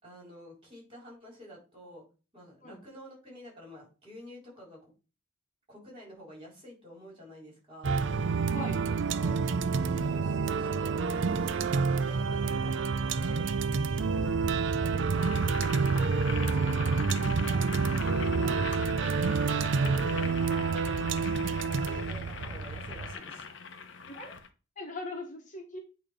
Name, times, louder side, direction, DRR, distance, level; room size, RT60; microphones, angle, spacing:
voice 1, 0.0-2.0 2.3-4.9 5.7-7.9 8.9-9.3 9.8-13.5 13.9-14.4 14.8-16.0 16.2-19.2 19.5-21.3 21.8-23.5, equal, 25° right, -3 dB, 4.0 m, -49 dB
sound 1, 7.8-23.1, right 4 dB, 60° right, 0.5 m, -28 dB
voice 2, 8.5-8.8 12.6-12.8 14.1-14.3 18.4-18.6 20.0-20.1 24.1-24.3 24.8-25.8, left 2 dB, 40° left, 2 dB, 1.3 m, -41 dB
Boiling, 15.1-24.5, left 5 dB, 65° left, 0.8 m, -42 dB
8.8 x 3.1 x 5.0 m, 0.33 s
head